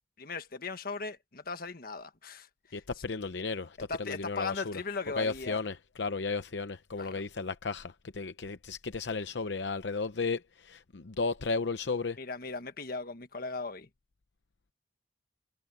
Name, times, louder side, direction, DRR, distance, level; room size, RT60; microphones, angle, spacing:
voice 1, 0.2-2.5 2.7-2.8 3.9-5.6 7.0-7.2 12.2-13.9, left 4 dB, 55° left, 1.6 m, -38 dB
voice 2, 2.7-4.8 5.2-12.2, left 4 dB, 80° left, 0.7 m, -34 dB
head